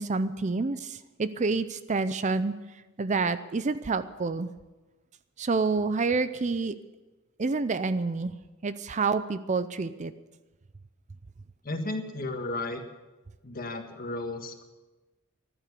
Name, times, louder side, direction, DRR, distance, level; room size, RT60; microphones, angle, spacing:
voice 1, 0.0-2.6 3.0-4.5 5.4-6.8 7.4-8.3 8.6-10.1, right 4 dB, 35° right, 13 dB, 0.5 m, -28 dB
voice 2, 11.6-12.8 13.4-14.6, left 2 dB, 40° left, 5 dB, 1.6 m, -34 dB
14.5 x 12.0 x 6.9 m, 1.1 s
head